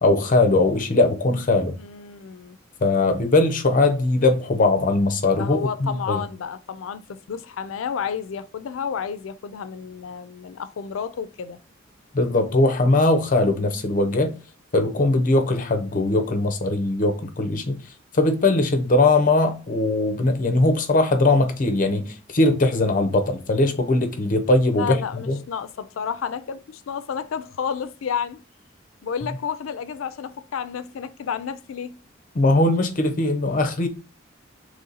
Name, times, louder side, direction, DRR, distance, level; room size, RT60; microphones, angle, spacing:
voice 1, 0.0-1.8 2.8-6.2 12.1-14.3 14.7-17.8 18.1-25.4 32.3-33.9, left 2 dB, 40° left, 0.6 m, -20 dB
voice 2, 1.8-2.6 5.4-11.6 24.7-28.4 29.0-31.9, left 7 dB, 85° left, 0.4 m, -31 dB
3.0 x 2.8 x 3.8 m
head